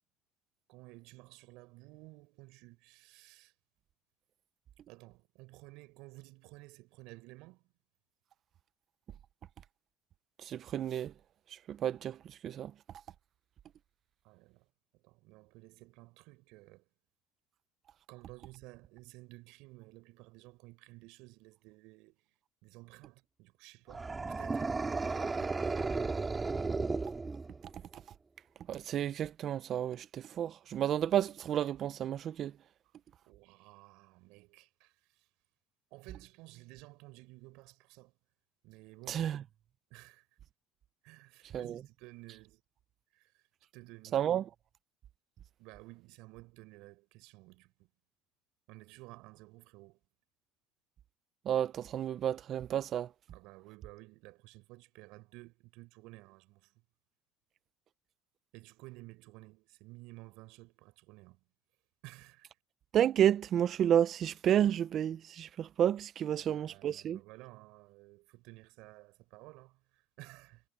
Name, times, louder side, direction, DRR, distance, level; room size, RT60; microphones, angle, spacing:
voice 1, 0.7-3.5 4.9-7.7 14.2-14.6 14.9-16.8 18.1-22.2 22.6-24.7 25.0-25.4 33.3-34.9 35.9-38.1 38.6-39.3 39.9-40.2 41.0-42.6 43.1-43.3 43.7-44.3 45.6-47.9 48.7-50.0 53.3-56.7 58.5-61.4 62.0-62.5 66.3-70.6, right 22 dB, 75° right, 6.2 m, -54 dB
voice 2, 10.4-11.1 11.7-12.2 12.4-12.7 28.7-32.5 39.1-39.4 41.5-41.8 44.1-44.4 51.5-53.1 62.9-67.2, right 10 dB, 45° right, 0.6 m, -31 dB
sound 1, 23.9-27.8, right 3 dB, 20° right, 2.3 m, -34 dB
cardioid pair, 115°, 0 cm